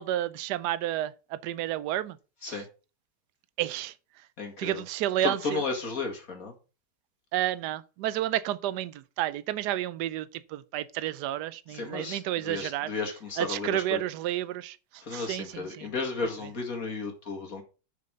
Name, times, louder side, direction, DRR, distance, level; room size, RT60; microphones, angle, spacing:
voice 1, 0.0-2.2 2.4-2.6 3.6-3.9 4.6-5.6 7.3-12.9 13.4-15.9, right 13 dB, 70° right, 1.2 m, -31 dB
voice 2, 4.4-4.8 5.2-6.5 11.7-14.0 15.0-17.6, left 4 dB, 50° left, 2.6 m, -34 dB
6.7 x 6.7 x 5.2 m
omnidirectional pair, 1.9 m